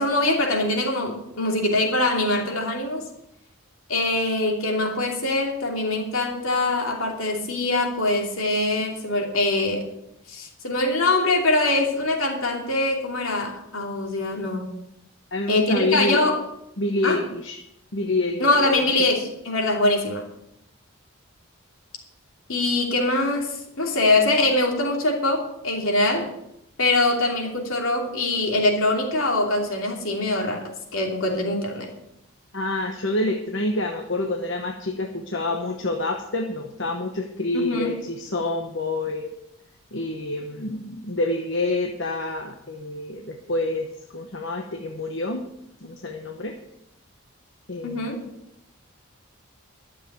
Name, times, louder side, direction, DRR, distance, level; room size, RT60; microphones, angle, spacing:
voice 1, 0.0-3.0 3.9-9.8 10.3-14.7 15.5-16.4 17.0-17.2 18.4-20.3 22.5-26.3 26.8-31.9 37.5-37.9 47.8-48.2, left 2 dB, 75° left, 1 dB, 2.9 m, -23 dB
voice 2, 15.3-16.2 16.8-17.6 17.9-18.9 32.5-39.3 39.9-43.9 44.1-45.5 45.8-46.5 47.7-48.1, left 2 dB, 55° left, 3 dB, 1.1 m, -27 dB
12.0 x 7.5 x 8.1 m, 0.82 s
head